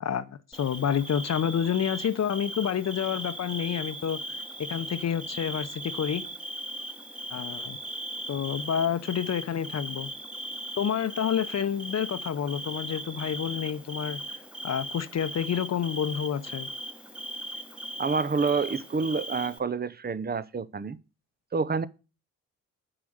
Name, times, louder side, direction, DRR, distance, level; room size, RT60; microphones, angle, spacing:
voice 1, 0.0-4.2 4.7-6.2 7.3-7.8 8.3-10.1 10.8-14.2 14.6-16.7, left 8 dB, 50° left, 0.8 m, -29 dB
Bird / Cricket, 0.5-19.6, right 1 dB, 5° right, 1.2 m, -38 dB
voice 2, 18.0-21.0 21.5-21.9, right 4 dB, 25° right, 0.7 m, -28 dB
8.7 x 4.9 x 6.5 m
hypercardioid pair, 45°, 35 cm